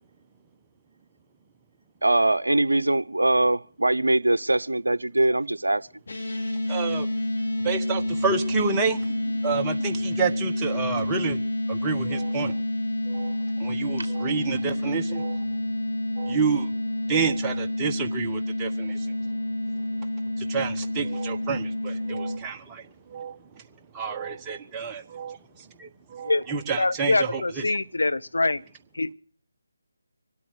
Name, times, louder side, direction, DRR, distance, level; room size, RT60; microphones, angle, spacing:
voice 1, 2.0-5.9, right 2 dB, 80° right, 0.7 m, -22 dB
sound 1, 6.1-22.4, left 1 dB, 55° left, 4.2 m, -28 dB
voice 2, 6.7-7.1 7.6-11.4 11.7-12.6 13.0-15.6 16.1-16.8 17.1-19.4 19.7-27.8, right 5 dB, 15° right, 1.2 m, -30 dB
voice 3, 26.8-28.6 28.9-29.1, left 2 dB, 70° left, 0.9 m, -24 dB
24.5 x 8.6 x 6.3 m
figure-of-eight pair, 150°, 0 cm